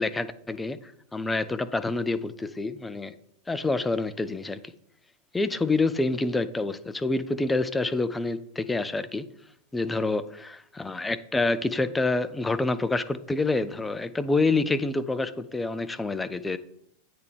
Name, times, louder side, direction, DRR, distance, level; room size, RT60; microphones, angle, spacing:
voice 1, 0.0-3.1 3.5-4.6 5.3-9.3 9.7-16.6, left 3 dB, 10° left, 12 dB, 0.3 m, -27 dB
8.3 x 3.4 x 4.6 m, 0.69 s
figure-of-eight pair, 90°, 0 cm